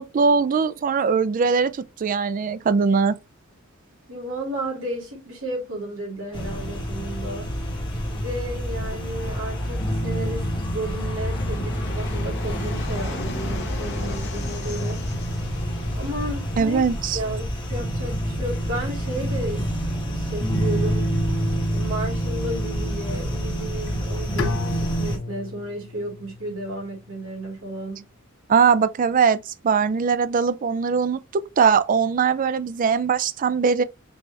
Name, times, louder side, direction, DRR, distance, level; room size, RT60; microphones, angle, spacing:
voice 1, 0.0-3.1 16.6-17.2 28.5-33.8, right 5 dB, 40° right, 0.3 m, -21 dB
voice 2, 4.1-7.5 8.0-15.0 15.9-16.8 17.1-19.7 20.0-21.2 21.7-28.1, right 1 dB, 75° right, 2.5 m, -33 dB
sound 1, 6.3-25.2, equal, 20° left, 1.5 m, -27 dB
Fixed-wing aircraft airplane, 9.0-16.6, left 2 dB, 55° left, 1.2 m, -38 dB
Bowed string instrument, 24.4-27.4, left 4 dB, 70° left, 0.5 m, -34 dB
5.3 x 2.8 x 3.2 m
head